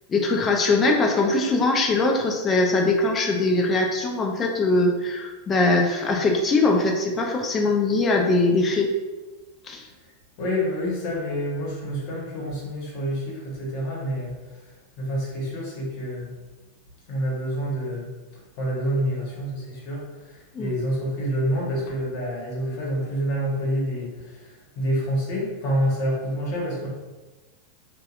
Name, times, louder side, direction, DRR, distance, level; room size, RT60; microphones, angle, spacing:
voice 1, 0.1-8.9 9.7-9.8 20.5-20.7, left 2 dB, 25° left, 1 dB, 0.4 m, -21 dB
voice 2, 10.4-16.3 17.1-18.1 18.6-26.9, equal, 55° left, -4 dB, 1.0 m, -28 dB
2.7 x 2.2 x 2.4 m, 1.2 s
hypercardioid pair, 115°, 0 cm